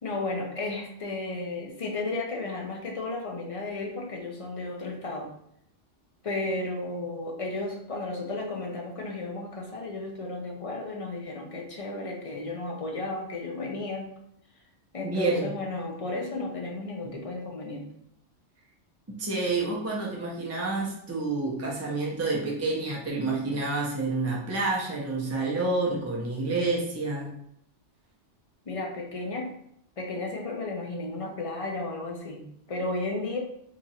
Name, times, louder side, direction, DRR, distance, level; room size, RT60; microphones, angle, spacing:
voice 1, 0.0-5.3 6.2-14.1 14.9-17.9 28.7-29.5 30.0-33.4, left 2 dB, 40° left, 0 dB, 0.6 m, -33 dB
voice 2, 15.0-15.5 17.0-17.2 19.2-27.3, right 3 dB, 15° right, -4 dB, 0.6 m, -29 dB
2.9 x 2.5 x 4.1 m, 0.72 s
omnidirectional pair, 1.2 m